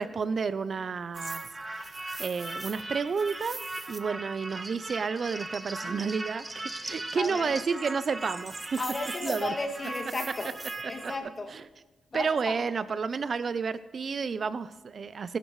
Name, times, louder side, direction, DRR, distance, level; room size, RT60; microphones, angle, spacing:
voice 1, 0.0-1.4 1.7-3.6 3.9-8.8 9.2-9.5 10.8-11.1 11.5-11.7 12.1-15.4, right 5 dB, 55° right, 14 dB, 0.5 m, -31 dB
sound 1, 1.1-11.2, right 2 dB, 25° right, 1.2 m, -38 dB
voice 2, 7.2-7.5 8.8-10.5 10.9-11.5 12.1-12.6, left 2 dB, 35° left, 3 dB, 2.2 m, -34 dB
25.5 x 12.0 x 3.2 m, 1.1 s
cardioid pair, 80°, 0 cm